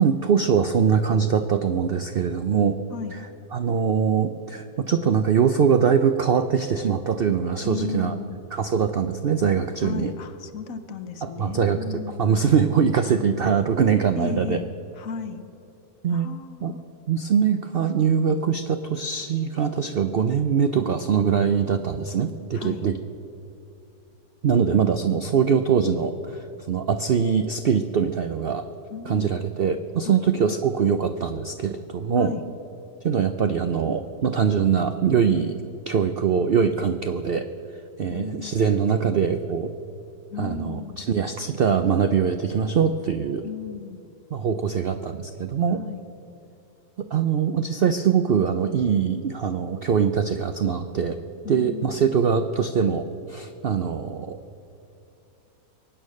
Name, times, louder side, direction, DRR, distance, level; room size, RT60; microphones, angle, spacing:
voice 1, 0.0-2.8 3.5-8.1 8.5-10.1 11.2-14.6 16.0-16.3 16.6-16.7 17.1-23.0 24.4-28.6 29.1-32.3 33.0-35.5 35.9-37.5 38.0-39.7 40.4-43.4 44.3-45.8 47.0-51.2 51.5-54.4, right 7 dB, 75° right, 9 dB, 0.5 m, -22 dB
voice 2, 7.6-8.4 9.8-12.3 14.2-14.7 14.9-15.4 16.1-16.8 22.5-22.9 28.9-29.5 30.0-30.3 32.2-32.5 38.1-38.8 40.3-41.0 43.4-44.0 45.7-46.0 51.4-52.1, left 7 dB, 60° left, 10 dB, 1.2 m, -35 dB
23.5 x 9.0 x 6.4 m, 2.7 s
omnidirectional pair, 1.8 m